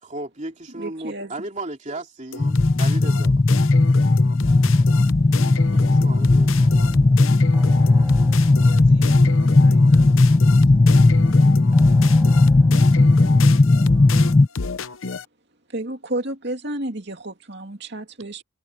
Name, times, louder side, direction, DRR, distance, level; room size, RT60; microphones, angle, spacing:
voice 1, 0.0-3.4 5.7-7.2, right 2 dB, 35° right, 3.1 m, -35 dB
voice 2, 0.7-1.3 15.7-18.4, right 1 dB, 50° right, 2.7 m, -31 dB
sound 1, 2.3-15.2, left 4 dB, 75° left, 0.8 m, -32 dB
sound 2, 2.4-14.5, left 2 dB, 25° left, 0.3 m, -16 dB
sound 3, 4.4-14.4, equal, 5° right, 6.3 m, -36 dB
voice 3, 8.5-10.2 10.6-10.7, right 2 dB, 70° right, 5.1 m, -45 dB
head